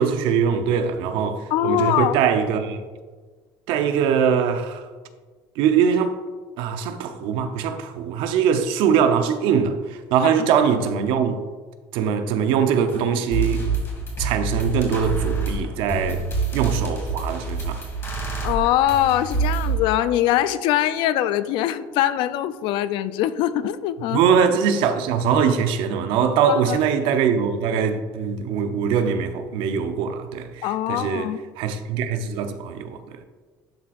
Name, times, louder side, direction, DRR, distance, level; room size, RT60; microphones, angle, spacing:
voice 1, 0.0-2.8 3.7-4.9 5.6-6.2 6.6-11.4 11.9-13.7 14.2-16.2 16.5-17.8 24.1-33.2, right 7 dB, 75° right, 0.6 m, -22 dB
voice 2, 1.5-2.2 10.2-10.3 18.4-24.2 26.5-26.8 30.6-31.4, left 12 dB, 65° left, 0.3 m, -22 dB
sound 1, 12.9-13.0 13.3-19.7, right 4 dB, 30° left, 2.0 m, -26 dB
11.5 x 4.2 x 2.4 m
cardioid pair, 130°, 9 cm